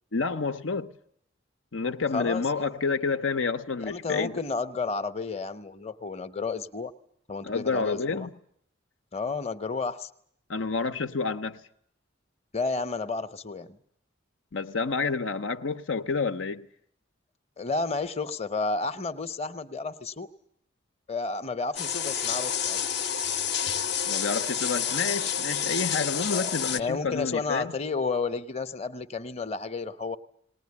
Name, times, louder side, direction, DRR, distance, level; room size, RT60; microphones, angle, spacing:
voice 1, 0.1-0.9 1.7-4.4 7.4-8.3 10.5-11.6 14.5-16.7 24.1-27.7, left 4 dB, 85° left, 0.9 m, -29 dB
voice 2, 2.1-2.7 3.8-6.9 7.3-8.3 9.1-10.1 12.5-13.8 17.6-20.3 21.1-22.9 26.3-30.2, left 4 dB, 30° left, 0.9 m, -31 dB
sound 1, 21.8-26.8, left 8 dB, 60° left, 0.9 m, -29 dB
20.0 x 19.5 x 9.7 m
head